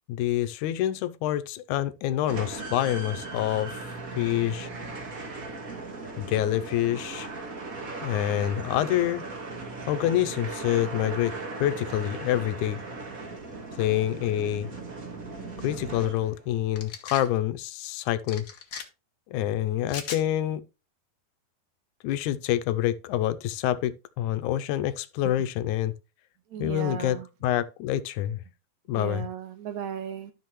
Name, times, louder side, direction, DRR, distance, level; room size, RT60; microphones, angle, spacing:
voice 1, 0.1-4.7 6.2-7.3 8.0-9.3 9.9-11.3 11.6-12.8 13.8-14.7 15.6-18.4 19.3-20.6 22.0-25.9 26.6-28.4 28.9-29.3, left 12 dB, 85° left, 2.0 m, -27 dB
sound 1, 2.3-16.5, right 3 dB, 35° right, 1.5 m, -38 dB
sound 2, 16.8-17.3 18.3-18.8 19.9-20.2, left 6 dB, 65° left, 0.9 m, -37 dB
voice 2, 26.5-27.3 28.9-30.3, right 9 dB, 75° right, 2.5 m, -35 dB
12.5 x 5.9 x 3.1 m
omnidirectional pair, 3.5 m